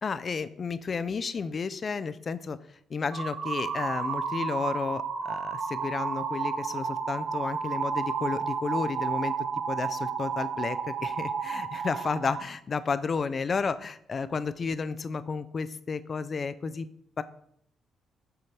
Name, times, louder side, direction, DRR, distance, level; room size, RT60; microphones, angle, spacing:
voice 1, 0.0-2.6 2.9-9.3 9.7-16.9 17.2-17.3, left 5 dB, 40° left, 14 dB, 0.4 m, -32 dB
sound 1, 3.1-12.4, right 6 dB, 65° right, 0.7 m, -32 dB
6.7 x 5.7 x 3.3 m, 0.69 s
cardioid pair, 90°, 0 cm